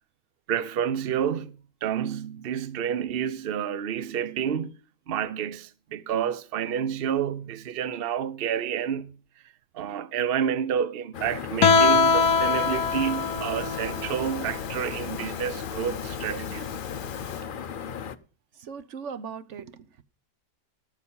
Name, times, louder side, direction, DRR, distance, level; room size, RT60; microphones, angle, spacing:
voice 1, 0.5-4.7 5.1-9.1 9.7-16.7, right 8 dB, 80° right, 0.5 m, -29 dB
sound 1, 11.1-18.2, left 7 dB, 90° left, 0.4 m, -36 dB
Guitar, 11.6-17.3, left 5 dB, 65° left, 1.4 m, -24 dB
voice 2, 18.6-20.0, right 6 dB, 50° right, 1.0 m, -39 dB
15.5 x 7.2 x 5.5 m
omnidirectional pair, 1.9 m